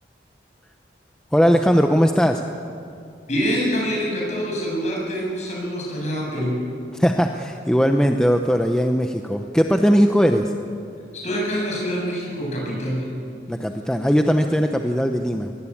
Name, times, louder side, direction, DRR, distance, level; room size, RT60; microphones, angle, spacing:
voice 1, 1.3-2.4 6.9-10.5 13.5-15.5, equal, 5° left, 4 dB, 0.7 m, -19 dB
voice 2, 3.3-6.7 11.2-13.1, equal, 40° left, -2 dB, 7.9 m, -25 dB
23.0 x 18.5 x 8.6 m, 2.4 s
head